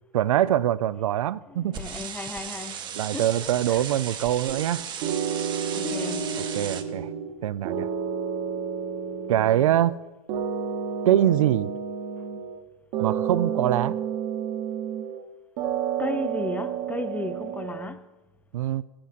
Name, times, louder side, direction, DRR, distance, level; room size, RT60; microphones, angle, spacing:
voice 1, 0.1-1.8 2.9-4.8 6.4-7.1 7.4-7.9 9.3-9.9 11.1-11.7 13.0-14.0 18.5-18.8, right 12 dB, 65° right, 0.4 m, -23 dB
voice 2, 1.5-2.8 3.1-3.8 5.7-6.3 16.0-18.1, left 3 dB, 10° left, 0.4 m, -35 dB
sound 1, 1.7-6.8, right 8 dB, 25° right, 0.8 m, -36 dB
sound 2, 4.5-4.7 5.0-7.4 7.6-10.0 10.3-12.6 12.9-15.3 15.6-17.9, right 7 dB, 45° right, 1.0 m, -30 dB
sound 3, 5.8-8.0, left 7 dB, 30° left, 1.2 m, -39 dB
15.0 x 8.6 x 2.5 m
figure-of-eight pair, 100°, 19 cm